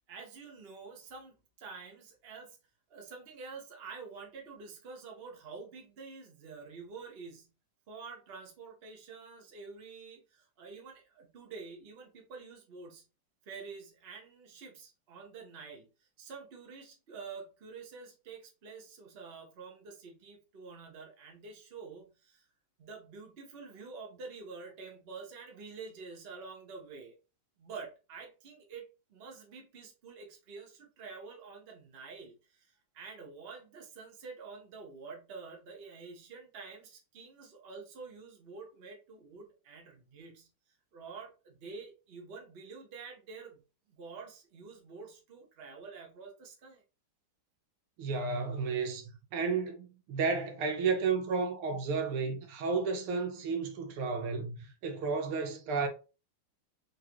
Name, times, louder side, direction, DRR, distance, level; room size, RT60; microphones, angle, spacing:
voice 1, 0.1-2.6 2.9-7.5 7.9-13.0 13.4-15.9 16.2-22.5 22.8-27.2 27.6-40.5 40.9-43.6 43.9-46.8, right 4 dB, 40° right, 0.9 m, -48 dB
voice 2, 48.0-55.9, right 4 dB, 80° right, 1.7 m, -32 dB
3.8 x 3.1 x 2.9 m
omnidirectional pair, 2.4 m